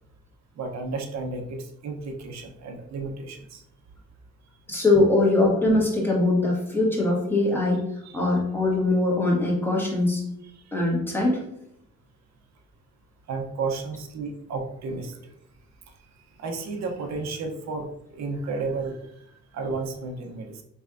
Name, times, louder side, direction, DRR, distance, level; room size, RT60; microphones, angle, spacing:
voice 1, 0.6-3.6 8.0-8.2 13.3-15.2 16.4-19.0 19.5-20.6, right 3 dB, 60° right, 4 dB, 0.8 m, -32 dB
voice 2, 4.7-7.8 8.1-10.2 10.7-11.4, left 2 dB, 5° left, -3 dB, 1.5 m, -22 dB
4.4 x 3.3 x 2.5 m, 0.79 s
cardioid pair, 90°, 30 cm